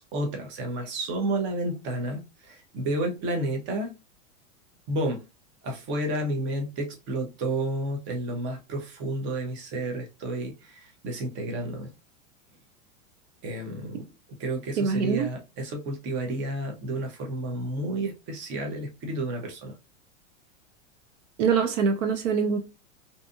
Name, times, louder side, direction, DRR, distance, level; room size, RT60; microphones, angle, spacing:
voice 1, 0.0-3.9 4.9-5.2 5.6-11.9 13.4-19.8, right 1 dB, 30° right, 0.7 m, -31 dB
voice 2, 14.8-15.3 21.4-22.6, right 6 dB, 65° right, 0.6 m, -24 dB
2.7 x 2.3 x 2.5 m
supercardioid pair, 135°, 39 cm